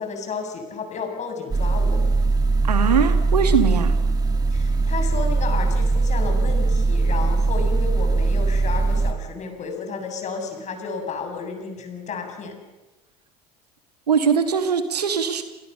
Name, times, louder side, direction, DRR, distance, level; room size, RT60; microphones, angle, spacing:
voice 1, 0.0-2.0 4.5-12.6, left 5 dB, 35° left, 5 dB, 7.4 m, -32 dB
sound 1, 1.5-9.1, right 3 dB, 20° right, 2.4 m, -20 dB
voice 2, 2.6-3.9 14.1-15.4, right 6 dB, 80° right, 8 dB, 2.6 m, -21 dB
29.0 x 28.0 x 7.0 m, 1.0 s
figure-of-eight pair, 70°, 20 cm